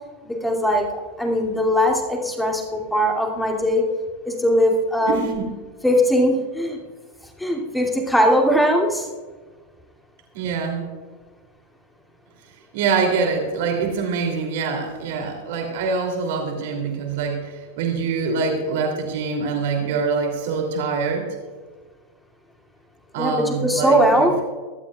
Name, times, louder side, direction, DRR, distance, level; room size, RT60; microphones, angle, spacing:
voice 1, 0.2-3.8 4.2-5.2 5.8-6.8 7.4-9.1 23.2-24.3, equal, 5° left, 0 dB, 2.7 m, -20 dB
voice 2, 5.1-5.5 10.3-10.8 12.7-21.3 23.1-24.4, right 5 dB, 50° right, 1 dB, 3.0 m, -24 dB
24.5 x 12.5 x 2.4 m, 1.4 s
figure-of-eight pair, 90°, 0 cm